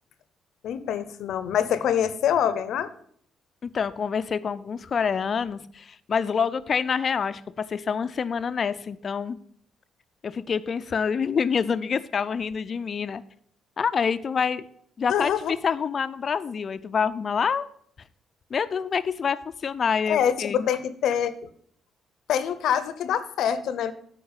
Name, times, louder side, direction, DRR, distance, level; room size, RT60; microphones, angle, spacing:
voice 1, 0.6-2.9 15.1-15.5 20.1-21.5 22.3-23.9, left 9 dB, 75° left, 13 dB, 0.7 m, -25 dB
voice 2, 3.6-9.4 10.2-13.2 13.8-14.7 15.0-15.3 15.6-17.7 18.5-19.4 19.6-20.7, left 6 dB, 45° left, 14 dB, 0.5 m, -26 dB
8.7 x 4.6 x 7.2 m, 0.64 s
cardioid pair, 90°, 0 cm